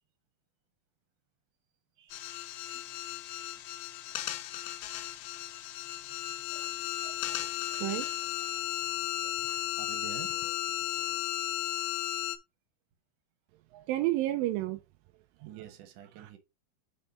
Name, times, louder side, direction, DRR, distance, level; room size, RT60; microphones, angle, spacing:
voice 1, 2.0-3.0 8.5-8.6 9.8-10.3 15.5-16.4, right 11 dB, 65° right, 2.3 m, -48 dB
sound 1, 2.1-12.4, left 14 dB, 80° left, 2.5 m, -35 dB
voice 2, 7.0-9.7 13.7-14.8 15.4-15.5 16.2-16.4, right 15 dB, 85° right, 2.0 m, -35 dB
5.5 x 4.6 x 4.4 m
omnidirectional pair, 4.6 m